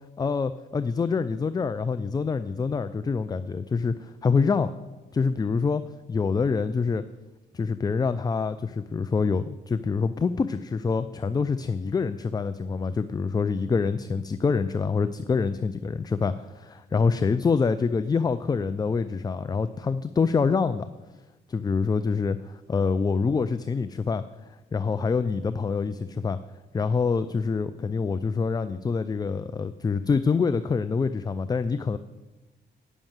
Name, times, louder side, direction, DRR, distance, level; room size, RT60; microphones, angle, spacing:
voice 1, 0.2-4.7 5.1-5.8 6.1-7.0 7.5-20.9 21.5-24.2 24.7-26.4 26.7-32.0, left 5 dB, 20° left, 12 dB, 0.4 m, -26 dB
9.1 x 6.2 x 7.3 m, 1.1 s
cardioid pair, 90°, 20 cm